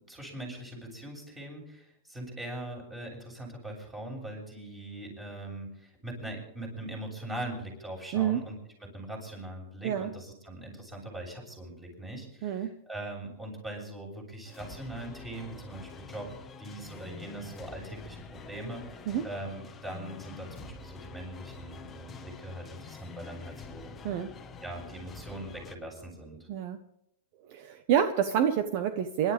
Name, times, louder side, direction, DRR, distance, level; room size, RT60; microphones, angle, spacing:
voice 1, 0.1-23.9 24.6-26.5, right 1 dB, 10° right, 0 dB, 7.4 m, -41 dB
sound 1, 14.5-25.8, left 4 dB, 15° left, 1.4 m, -46 dB
voice 2, 26.5-26.8 27.5-29.3, right 9 dB, 50° right, 9 dB, 1.1 m, -28 dB
26.5 x 12.5 x 3.5 m, 0.77 s
supercardioid pair, 155°, 0 cm